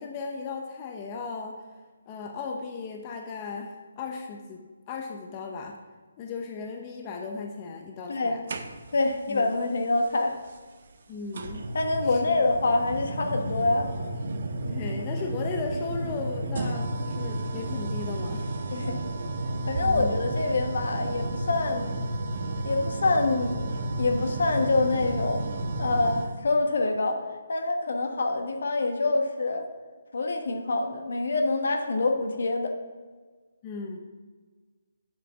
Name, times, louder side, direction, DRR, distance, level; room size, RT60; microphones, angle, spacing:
voice 1, 0.0-1.6 2.1-5.8 6.2-8.4 9.3-9.5 11.1-11.6 12.0-12.3 14.7-18.5 19.8-20.2 33.6-34.0, left 4 dB, 25° left, 2 dB, 0.8 m, -36 dB
sound 1, 8.5-9.1 10.5-10.6 11.3-26.4, right 2 dB, 55° right, 0.8 m, -32 dB
voice 2, 8.9-10.4 11.7-13.9 18.7-19.0 19.7-21.9 22.6-23.6 24.0-27.2 27.5-29.7 30.1-32.7, left 3 dB, 65° left, 4 dB, 1.2 m, -26 dB
7.6 x 5.0 x 6.9 m, 1.4 s
figure-of-eight pair, 150°, 0 cm